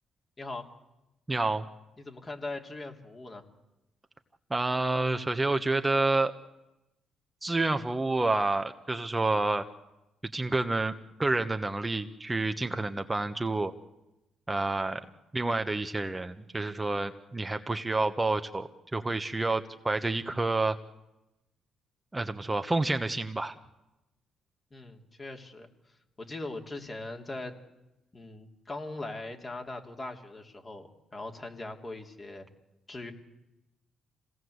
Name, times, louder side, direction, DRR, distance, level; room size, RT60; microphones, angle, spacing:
voice 1, 1.3-1.7 4.5-6.3 7.4-9.6 10.3-10.9 11.2-13.7 14.5-15.0 15.3-20.8 22.1-23.5, right 2 dB, 20° right, 7 dB, 1.3 m, -29 dB
voice 2, 2.0-3.4 24.7-27.5 28.1-32.5 32.9-33.1, left 2 dB, 30° left, 3 dB, 3.2 m, -40 dB
26.5 x 18.0 x 8.1 m, 0.96 s
supercardioid pair, 60°, 0 cm